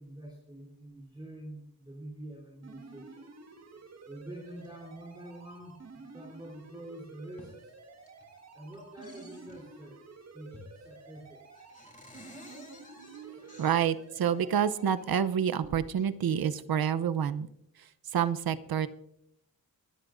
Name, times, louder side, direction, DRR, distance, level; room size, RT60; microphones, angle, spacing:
voice 1, 0.0-3.3 4.1-5.8 6.1-7.7 8.5-10.0 10.3-11.7, right 1 dB, 10° right, -2 dB, 3.7 m, -46 dB
sound 1, 2.6-15.3, right 3 dB, 45° right, 1.8 m, -51 dB
sound 2, 4.5-4.7 5.6-5.8 6.4-6.5 6.9-7.6 7.9-8.4 8.7-9.9 10.5-10.9 11.2-11.3 11.5-14.8 15.5-16.1, left 2 dB, 20° left, 3.4 m, -54 dB
voice 2, 12.5-17.5 17.8-18.9, right 8 dB, 70° right, 13 dB, 0.8 m, -29 dB
27.5 x 12.5 x 2.6 m, 0.75 s
wide cardioid pair, 150°, 37 cm